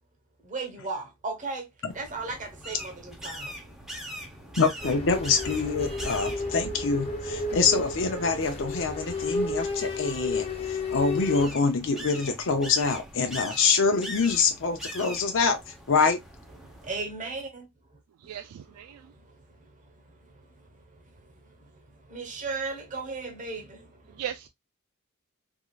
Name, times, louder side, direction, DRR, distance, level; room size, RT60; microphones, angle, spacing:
voice 1, 0.4-1.7 1.9-3.6 4.0-4.2 16.6-17.7 22.1-24.2, right 3 dB, 35° right, 1.1 m, -36 dB
sound 1, 1.9-17.0, equal, ahead, 0.8 m, -43 dB
voice 2, 4.6-15.6 15.9-16.2, left 4 dB, 60° left, 0.6 m, -25 dB
sound 2, 4.8-11.5, left 3 dB, 30° left, 1.3 m, -32 dB
voice 3, 18.2-19.1 24.1-24.5, right 10 dB, 85° right, 0.3 m, -38 dB
3.6 x 3.2 x 2.3 m
head